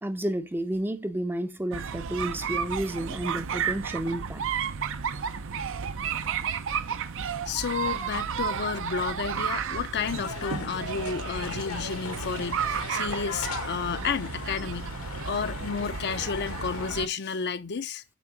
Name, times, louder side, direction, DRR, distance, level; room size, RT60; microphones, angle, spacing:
voice 1, 0.0-4.4, right 1 dB, 10° right, 0.6 m, -31 dB
sound 1, 1.7-17.1, right 7 dB, 60° right, 0.6 m, -32 dB
voice 2, 7.5-14.9 15.2-18.0, left 6 dB, 50° left, 0.6 m, -31 dB
sound 2, 10.0-16.9, left 5 dB, 65° left, 1.1 m, -38 dB
8.4 x 3.6 x 4.6 m
head